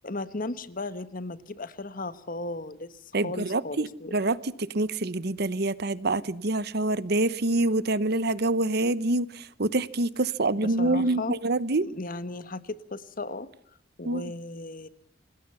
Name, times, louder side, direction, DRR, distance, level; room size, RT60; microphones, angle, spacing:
voice 1, 0.0-3.0 3.2-4.1 10.6-11.3 11.8-13.5 14.0-14.9, left 2 dB, 45° left, 1.4 m, -36 dB
voice 2, 3.1-11.9 14.0-14.3, right 2 dB, 55° right, 1.0 m, -26 dB
28.0 x 19.5 x 5.6 m
head